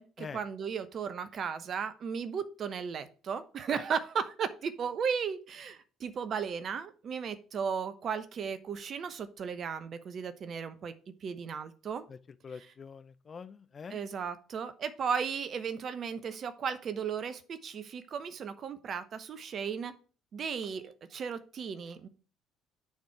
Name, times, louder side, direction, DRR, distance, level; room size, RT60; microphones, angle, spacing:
voice 1, 0.0-10.9 11.2-12.1 12.5-12.7 13.9-19.9 20.3-22.1, right 6 dB, 45° right, 0.9 m, -35 dB
voice 2, 12.4-14.0, left 6 dB, 35° left, 0.5 m, -45 dB
9.5 x 4.4 x 4.7 m
figure-of-eight pair, 50°, 0 cm